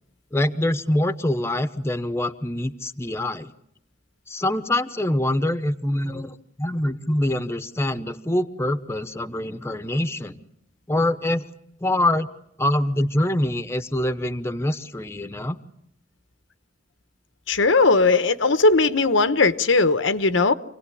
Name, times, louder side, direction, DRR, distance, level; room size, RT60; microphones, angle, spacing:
voice 1, 0.3-3.5 4.3-10.4 10.9-11.4 11.8-12.3 12.6-15.6, left 1 dB, 15° left, 0.9 m, -24 dB
voice 2, 17.5-20.5, left 3 dB, 85° left, 1.1 m, -18 dB
27.5 x 18.0 x 10.0 m
head